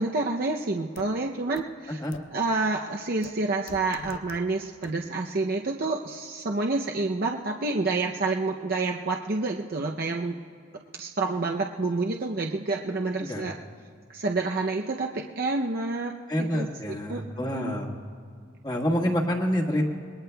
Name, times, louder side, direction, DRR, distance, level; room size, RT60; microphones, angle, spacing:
voice 1, 0.0-2.0 2.3-10.4 11.0-13.6 14.1-16.1 16.4-17.7, right 3 dB, 50° right, 1 dB, 0.6 m, -28 dB
sound 1, 1.0-1.1 1.6-1.7 2.1-2.2 3.2-3.3 3.7-4.4 4.8-4.9, left 4 dB, 90° left, 0.5 m, -41 dB
voice 2, 16.3-17.9 18.6-19.8, equal, 25° left, -1 dB, 1.6 m, -27 dB
27.0 x 21.0 x 2.3 m, 2.1 s
head